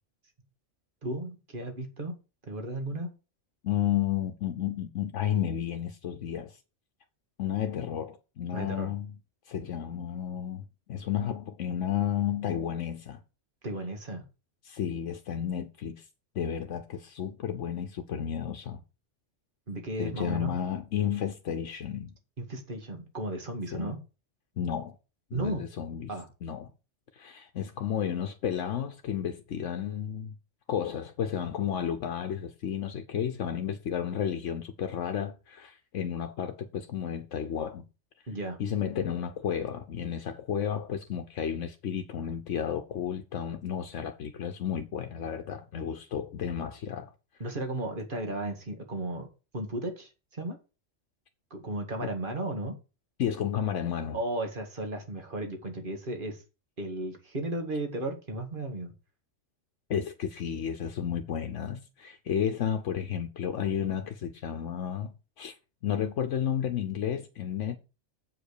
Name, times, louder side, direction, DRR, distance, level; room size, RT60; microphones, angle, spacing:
voice 1, 1.0-2.2 2.5-3.1 8.5-8.9 13.6-14.2 19.7-20.5 22.4-24.0 25.3-25.7 26.1-26.3 38.3-38.6 47.4-49.3 49.5-50.6 51.5-52.7 54.1-56.4 56.8-58.9, right 1 dB, 45° right, 2.0 m, -34 dB
voice 2, 3.6-6.6 7.4-9.2 9.5-13.2 14.6-16.1 16.3-18.8 20.0-22.1 23.7-23.9 24.6-25.0 25.3-26.1 26.4-26.7 27.1-30.3 30.7-37.8 38.6-47.1 53.2-54.2 59.9-65.6 65.8-67.8, left 9 dB, 80° left, 1.1 m, -32 dB
7.9 x 5.2 x 6.5 m
omnidirectional pair, 1.2 m